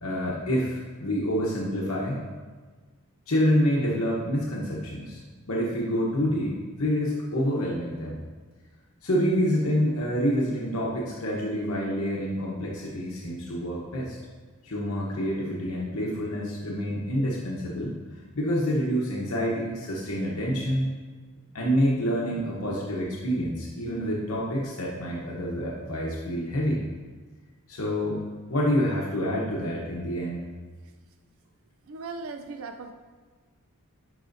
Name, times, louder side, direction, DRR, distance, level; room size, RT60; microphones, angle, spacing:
voice 1, 0.0-2.2 3.3-5.2 5.5-8.2 9.0-14.2 14.6-17.9 18.3-20.9 21.5-26.8 27.7-28.2 28.5-30.4, equal, 70° left, -4 dB, 1.0 m, -27 dB
voice 2, 31.9-32.9, right 4 dB, 65° right, 5 dB, 0.4 m, -37 dB
11.0 x 4.9 x 2.6 m, 1.4 s
head